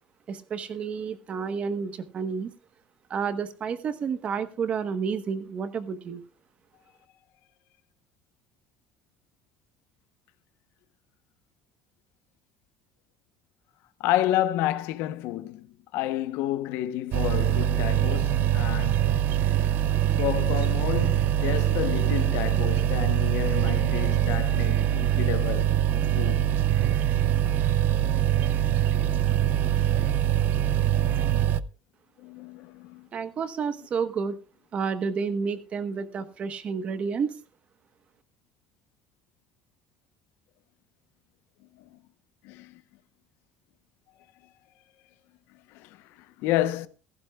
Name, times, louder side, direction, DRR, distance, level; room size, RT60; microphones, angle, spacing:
voice 1, 0.3-2.5 3.1-6.2 33.1-34.4 34.7-37.4, right 6 dB, 30° right, 1.1 m, -30 dB
voice 2, 14.0-15.7 15.9-19.0 20.2-25.7 26.1-26.5 30.6-30.7 31.2-31.4 32.2-33.1 41.8-42.0 42.4-42.8 45.7-46.9, left 14 dB, 70° left, 0.9 m, -30 dB
sound 1, 17.1-31.6, right 11 dB, 50° right, 0.5 m, -23 dB
16.0 x 15.0 x 2.3 m
cardioid pair, 160°, 4 cm